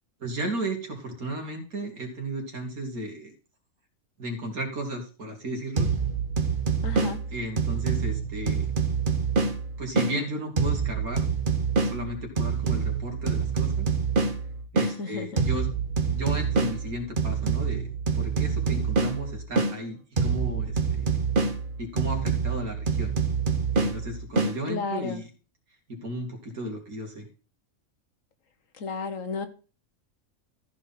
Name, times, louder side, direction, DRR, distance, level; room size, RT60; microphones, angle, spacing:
voice 1, 0.2-3.3 4.2-5.9 7.3-8.7 9.8-11.3 11.8-13.9 14.7-15.7 16.1-17.9 18.1-21.1 21.8-23.1 23.7-25.3 25.9-27.2, right 1 dB, 85° right, 3 dB, 3.1 m, -34 dB
sound 1, 5.8-10.1 10.6-14.9 15.4-19.7 20.2-24.5, right 5 dB, 40° right, 1.4 m, -26 dB
voice 2, 6.8-7.2 14.8-15.4 24.7-25.2 28.8-29.5, left 4 dB, 65° left, 9 dB, 1.6 m, -33 dB
14.5 x 5.0 x 5.7 m, 0.36 s
omnidirectional pair, 1.5 m